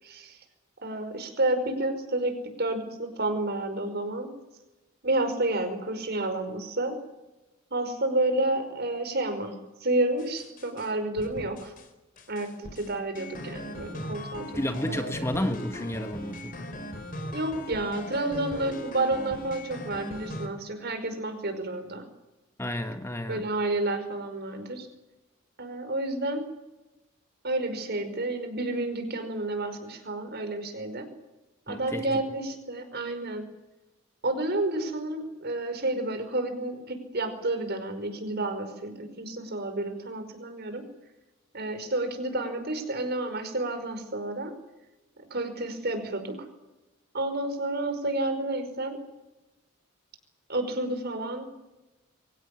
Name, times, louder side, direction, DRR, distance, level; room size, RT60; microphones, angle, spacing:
voice 1, 0.0-0.4 0.8-4.3 5.0-7.0 7.7-11.7 12.3-14.5 14.9-15.1 17.3-22.0 23.3-24.9 25.6-26.5 27.4-31.1 31.7-33.4 34.2-40.8 41.5-44.5 45.3-46.4 47.1-49.0 50.5-51.4, right 2 dB, 50° right, 8 dB, 5.3 m, -30 dB
sound 1, 10.2-10.9 11.2-11.9 12.2-20.5, left 1 dB, 45° left, 3.9 m, -39 dB
voice 2, 14.5-16.6 22.6-23.5 31.7-32.0, left 1 dB, 15° left, 7 dB, 1.5 m, -31 dB
24.0 x 18.0 x 9.8 m, 1.0 s
head